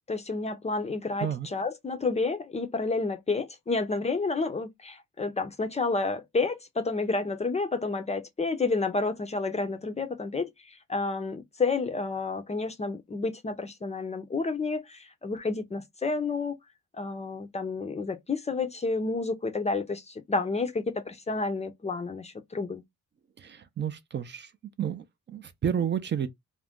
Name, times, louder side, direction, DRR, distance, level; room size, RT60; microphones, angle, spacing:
voice 1, 0.1-16.5 16.9-22.8, left 3 dB, 20° left, 0.5 m, -30 dB
voice 2, 23.4-24.5 24.8-26.3, right 8 dB, 35° right, 0.5 m, -31 dB
2.4 x 2.1 x 3.5 m
cardioid pair, 90°, 30 cm